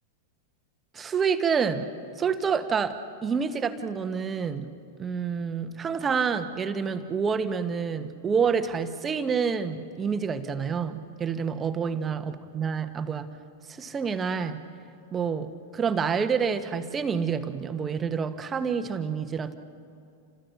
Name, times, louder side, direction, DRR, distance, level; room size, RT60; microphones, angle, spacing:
voice 1, 0.9-1.9 2.2-13.3 13.7-14.6 15.1-19.6, right 6 dB, 20° right, 9 dB, 1.4 m, -28 dB
30.0 x 27.0 x 6.0 m, 2.6 s
figure-of-eight pair, 95°, 0 cm